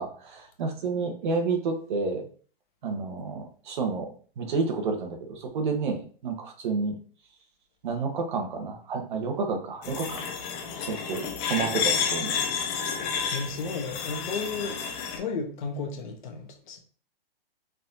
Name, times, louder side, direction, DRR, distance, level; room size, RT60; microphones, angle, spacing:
voice 1, 0.0-2.2 2.8-4.1 4.4-7.0 7.8-10.2 10.9-12.3, right 4 dB, 50° right, 1.4 m, -30 dB
sound 1, 9.8-15.2, left 6 dB, 20° left, 0.6 m, -30 dB
voice 2, 13.3-14.8 15.1-16.8, left 4 dB, 55° left, 1.3 m, -33 dB
4.6 x 4.0 x 2.8 m
hypercardioid pair, 155°, 30 cm